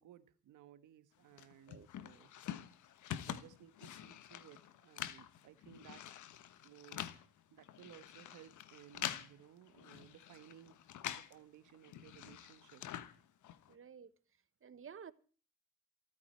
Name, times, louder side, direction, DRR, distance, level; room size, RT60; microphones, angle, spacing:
voice 1, 0.0-2.3 3.1-6.1 6.6-7.1 7.5-10.8 11.2-12.8, right 11 dB, 75° right, 1.5 m, -59 dB
sound 1, 1.4-11.4 11.7-13.7, left 11 dB, 70° left, 1.4 m, -46 dB
voice 2, 13.7-15.1, right 7 dB, 45° right, 1.3 m, -54 dB
27.5 x 9.5 x 4.6 m
supercardioid pair, 60°, 31 cm